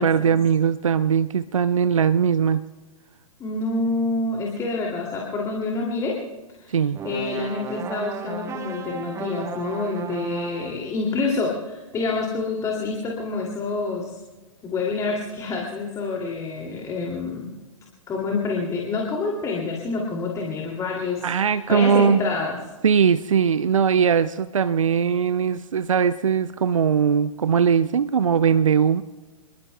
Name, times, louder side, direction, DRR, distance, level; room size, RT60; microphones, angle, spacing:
voice 1, 0.0-2.6 6.7-7.0 21.2-22.2 22.8-29.0, right 7 dB, 70° right, 15 dB, 0.6 m, -20 dB
voice 2, 3.4-6.2 6.6-6.8 7.0-14.2 14.6-17.5 18.1-22.6, left 3 dB, 20° left, -1 dB, 2.5 m, -27 dB
sound 1, 6.9-10.9, right 6 dB, 15° right, 1.0 m, -34 dB
29.5 x 21.5 x 2.2 m, 1.2 s
figure-of-eight pair, 110°, 18 cm